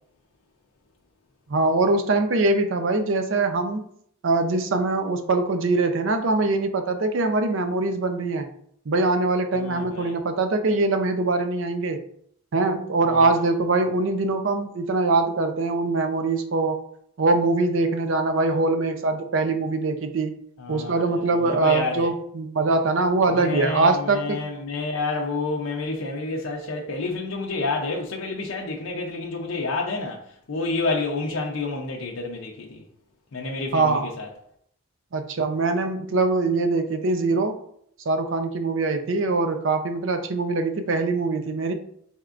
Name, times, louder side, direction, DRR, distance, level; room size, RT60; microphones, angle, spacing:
voice 1, 1.5-3.8 4.2-8.5 8.9-12.0 12.5-16.8 17.2-20.3 20.7-24.4 33.7-34.1 35.1-37.5 38.1-41.7, right 3 dB, 65° right, 0.5 m, -23 dB
voice 2, 9.5-10.2 13.1-13.5 20.6-22.1 23.4-32.8 33.3-34.3, left 3 dB, 80° left, 0.5 m, -29 dB
4.2 x 3.5 x 2.4 m
head